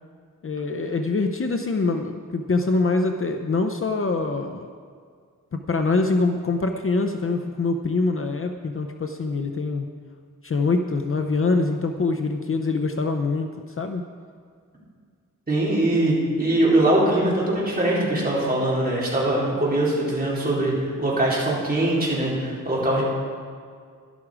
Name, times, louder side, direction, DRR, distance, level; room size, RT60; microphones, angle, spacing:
voice 1, 0.4-4.7 5.5-9.9 10.4-14.1, left 3 dB, 40° left, 5 dB, 0.6 m, -24 dB
voice 2, 15.5-23.0, right 1 dB, 25° right, -6 dB, 3.8 m, -22 dB
12.5 x 12.0 x 4.9 m, 2.1 s
wide cardioid pair, 140°, 33 cm